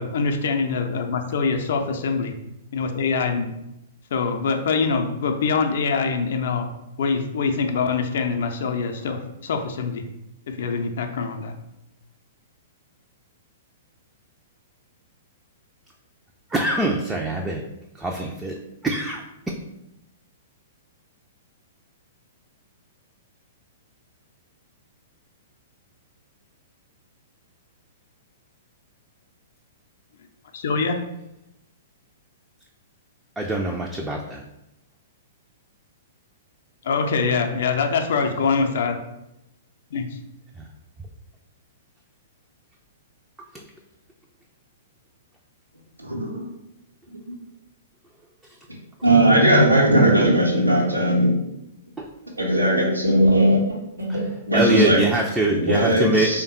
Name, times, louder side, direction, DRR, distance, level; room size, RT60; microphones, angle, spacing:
voice 1, 0.0-2.3 2.7-3.5 4.1-6.7 7.0-10.0 10.5-11.6 30.5-31.0 36.8-39.0 39.9-40.1, left 5 dB, 55° left, 5 dB, 0.4 m, -24 dB
voice 2, 16.5-17.6 18.0-18.6 18.8-19.2 33.4-34.4 43.5-43.6 52.0-52.1 54.5-56.4, right 1 dB, 10° right, -1 dB, 0.3 m, -24 dB
voice 3, 46.0-46.5 49.0-51.4 52.4-55.0 55.5-56.4, right 1 dB, 85° right, -2 dB, 0.8 m, -18 dB
3.4 x 2.2 x 3.9 m, 0.87 s
figure-of-eight pair, 110°, 0 cm